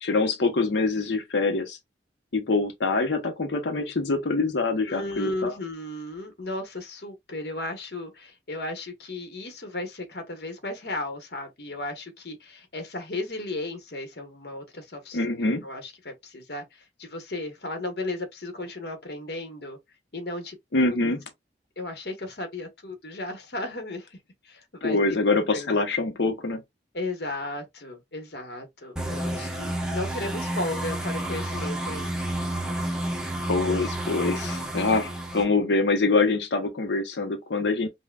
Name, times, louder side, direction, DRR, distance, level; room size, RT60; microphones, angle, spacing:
voice 1, 0.0-1.8 2.3-5.5 15.1-15.6 20.7-21.2 24.8-26.6 33.5-37.9, left 3 dB, 80° left, 0.8 m, -25 dB
voice 2, 4.9-15.2 15.6-19.8 20.1-20.6 20.9-21.0 21.8-24.2 24.4-25.2 25.5-25.7 26.9-32.5, left 2 dB, 60° left, 1.1 m, -35 dB
sound 1, 29.0-35.4, right 1 dB, 5° right, 0.7 m, -30 dB
5.4 x 2.2 x 2.3 m
head